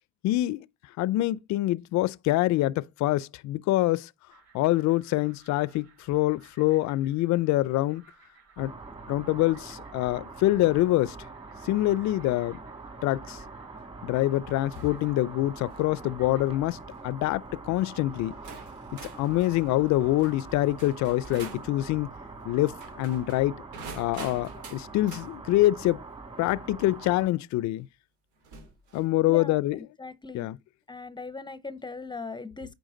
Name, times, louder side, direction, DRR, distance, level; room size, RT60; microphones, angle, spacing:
voice 1, 0.2-0.6 1.0-4.1 4.5-8.0 8.6-8.7 9.1-11.2 11.6-12.6 13.0-13.4 14.0-16.8 17.0-18.3 19.0-22.1 22.4-23.6 24.0-26.0 26.4-27.9 28.9-29.8 30.3-30.6, left 16 dB, 70° left, 0.5 m, -25 dB
sound 1, 4.3-16.6, right 5 dB, 60° right, 4.4 m, -60 dB
sound 2, 8.6-27.3, right 3 dB, 20° right, 1.9 m, -44 dB
sound 3, 14.7-15.0 15.5-15.9 16.7-17.0 17.8-17.9 18.4-21.7 22.7-25.3 27.0-27.1 28.4-29.1, right 4 dB, 90° right, 3.1 m, -46 dB
voice 2, 29.3-30.5 30.9-32.7, left 3 dB, 15° left, 0.6 m, -39 dB
9.0 x 4.8 x 3.8 m
cardioid pair, 95°, 29 cm